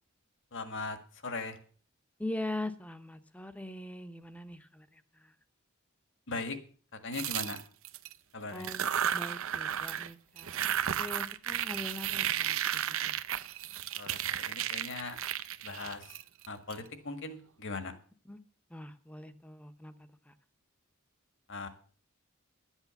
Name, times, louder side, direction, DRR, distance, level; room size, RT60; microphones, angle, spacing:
voice 1, 0.5-1.6 6.3-6.6 7.0-7.6 8.3-8.7 14.0-15.2 15.6-16.2 16.5-17.9 21.5-21.7, left 3 dB, 60° left, 9 dB, 1.7 m, -39 dB
voice 2, 2.2-4.9 8.5-8.9 9.1-10.6 11.0-12.6 13.0-13.1 18.3-18.4 18.7-19.9, left 1 dB, 5° left, 10 dB, 0.8 m, -41 dB
sound 1, 7.1-8.1 8.6-10.1 10.4-16.7, right 10 dB, 70° right, 0.7 m, -33 dB
11.5 x 8.2 x 7.0 m, 0.43 s
head